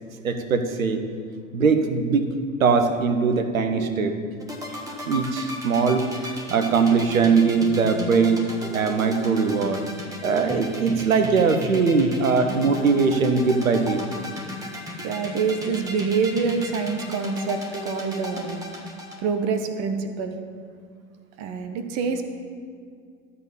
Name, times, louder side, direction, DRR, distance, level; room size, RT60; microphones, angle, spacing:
voice 1, 0.2-1.0 1.5-2.3 2.6-4.1 5.1-9.8 10.2-14.0, right 5 dB, 75° right, 7 dB, 1.1 m, -21 dB
sound 1, 4.4-19.2, left 1 dB, 10° right, 1.6 m, -34 dB
voice 2, 15.0-18.6 19.2-20.3 21.4-22.2, right 5 dB, 40° right, 7 dB, 1.1 m, -26 dB
12.5 x 4.2 x 8.4 m, 2.2 s
figure-of-eight pair, 95°, 41 cm